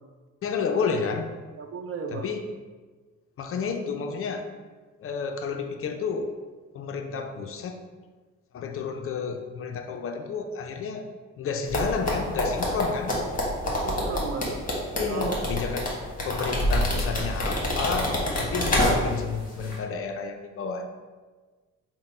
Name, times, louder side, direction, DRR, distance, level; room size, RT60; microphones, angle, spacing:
voice 1, 0.4-1.3 2.1-2.4 3.4-4.5 5.0-6.3 6.7-7.8 8.5-11.1 11.4-13.2 14.9-15.9 16.2-20.9, left 5 dB, 50° left, 5 dB, 0.4 m, -30 dB
voice 2, 1.6-2.4 13.6-14.6 15.1-15.4 15.7-15.8, right 5 dB, 50° right, 5 dB, 0.5 m, -35 dB
sound 1, 11.7-19.3 19.6-19.7, left 1 dB, 25° left, 1.2 m, -26 dB
4.0 x 2.1 x 4.1 m, 1.4 s
cardioid pair, 90°, 30 cm